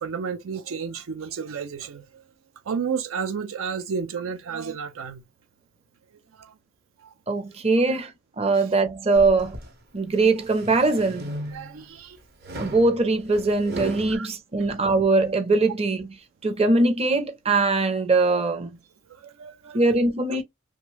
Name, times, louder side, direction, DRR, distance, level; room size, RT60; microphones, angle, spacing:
voice 1, 0.0-2.2 2.7-5.2 6.4-6.5 7.0-7.1 8.5-8.6 11.5-12.2 14.1-14.3 19.2-19.8, right 6 dB, 75° right, 0.4 m, -32 dB
voice 2, 7.3-8.1 8.4-9.6 9.9-11.3 12.6-16.2 16.4-18.8 19.7-20.4, right 3 dB, 30° right, 0.6 m, -21 dB
sound 1, 9.1-9.7 10.2-11.8 12.4-14.2, right 1 dB, 50° right, 1.0 m, -36 dB
3.0 x 2.2 x 3.2 m
head